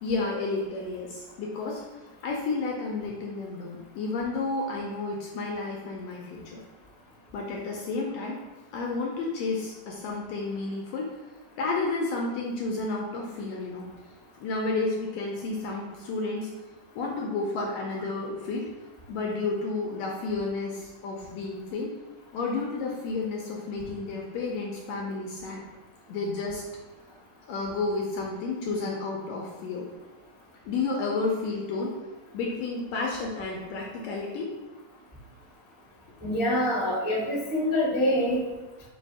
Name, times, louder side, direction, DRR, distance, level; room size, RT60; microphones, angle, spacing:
voice 1, 0.0-1.8 2.2-6.6 7.3-8.4 8.7-11.0 11.6-13.9 14.4-16.5 16.9-18.7 19.1-21.9 22.3-25.6 26.1-26.6 27.5-29.9 30.6-31.9 32.3-34.5, left 3 dB, 75° left, -1 dB, 1.5 m, -31 dB
voice 2, 36.2-38.4, left 1 dB, 40° left, -7 dB, 0.4 m, -25 dB
5.0 x 2.3 x 4.7 m, 1.1 s
omnidirectional pair, 3.4 m